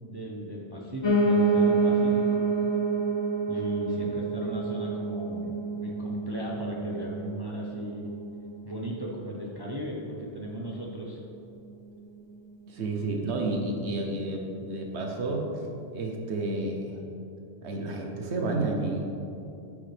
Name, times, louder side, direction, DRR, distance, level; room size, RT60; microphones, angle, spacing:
voice 1, 0.0-2.5 3.5-8.1 8.6-11.2, equal, 25° right, -3 dB, 0.7 m, -37 dB
Piano, 1.0-10.1 10.5-11.7 12.0-12.1 12.3-12.4 12.6-12.7 13.3-13.4, right 3 dB, 30° left, 0.5 m, -28 dB
voice 2, 12.6-15.5 15.9-17.0 17.6-19.1, right 2 dB, 80° right, 1 dB, 1.1 m, -30 dB
10.0 x 6.5 x 3.4 m, 2.7 s
omnidirectional pair, 1.1 m